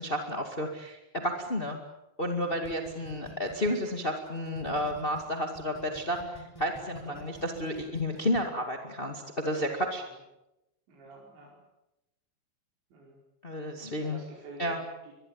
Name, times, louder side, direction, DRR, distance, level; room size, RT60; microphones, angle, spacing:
voice 1, 0.0-1.8 2.2-10.0 13.4-14.2 14.6-14.8, equal, 30° left, 3 dB, 0.9 m, -31 dB
sound 1, 2.6-5.2 5.6-8.4, equal, 5° left, 3.6 m, -47 dB
voice 2, 2.9-3.4 7.0-7.2 9.9-10.0 10.9-11.6 12.9-13.2 14.0-15.1, right 3 dB, 75° right, -3 dB, 7.4 m, -49 dB
24.0 x 21.5 x 8.8 m, 0.92 s
omnidirectional pair, 5.1 m